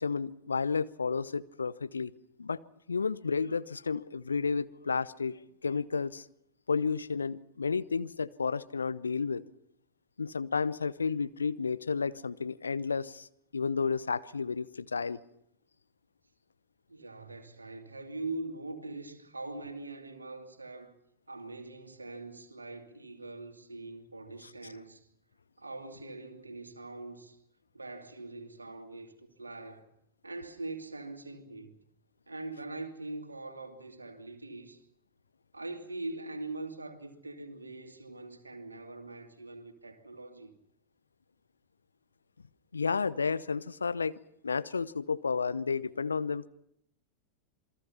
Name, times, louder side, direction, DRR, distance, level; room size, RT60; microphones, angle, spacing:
voice 1, 0.0-2.1 2.4-2.6 2.9-6.2 6.7-9.4 10.2-13.3 13.5-15.2 42.7-44.2 44.4-46.5, left 5 dB, 75° left, 0.8 m, -32 dB
voice 2, 16.9-21.0 21.3-25.1 25.6-27.4 27.7-29.9 30.2-31.7 32.3-34.8 35.5-40.5, right 2 dB, 80° right, 2.6 m, -42 dB
27.5 x 22.5 x 5.7 m
figure-of-eight pair, 90°, 0 cm